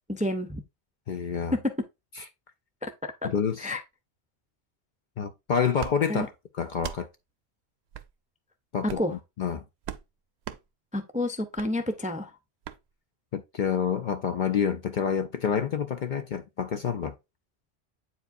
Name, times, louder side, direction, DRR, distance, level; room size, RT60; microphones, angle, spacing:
voice 1, 0.1-0.6 1.5-1.7 2.8-3.3 3.6-3.8 6.1-6.3 8.8-9.2 10.9-12.3, left 1 dB, 10° right, 0.4 m, -29 dB
voice 2, 1.1-1.5 2.2-2.3 3.2-3.7 5.2-6.3 6.6-7.1 8.7-9.0 9.4-9.6 13.3-17.1, left 7 dB, 60° left, 0.6 m, -28 dB
sound 1, 5.8-6.0 6.7-7.0 7.9-8.1 8.8-9.1 9.8-10.0 10.4-10.6 11.5-11.7 12.6-12.8, right 10 dB, 75° right, 0.8 m, -38 dB
8.2 x 4.7 x 2.6 m
omnidirectional pair, 1.1 m